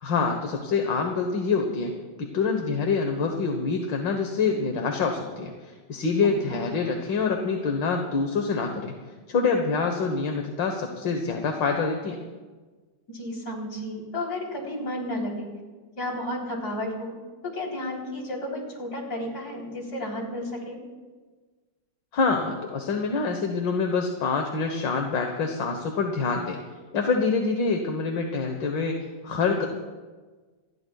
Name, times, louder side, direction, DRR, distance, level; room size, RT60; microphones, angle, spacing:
voice 1, 0.0-1.9 2.2-9.0 9.3-12.2 22.1-26.6 26.9-29.7, left 4 dB, 75° left, 4 dB, 1.9 m, -26 dB
voice 2, 6.5-6.8 13.1-15.5 15.9-17.2 17.4-20.8, left 1 dB, 55° left, -1 dB, 4.4 m, -32 dB
27.5 x 20.0 x 2.4 m, 1.3 s
omnidirectional pair, 2.0 m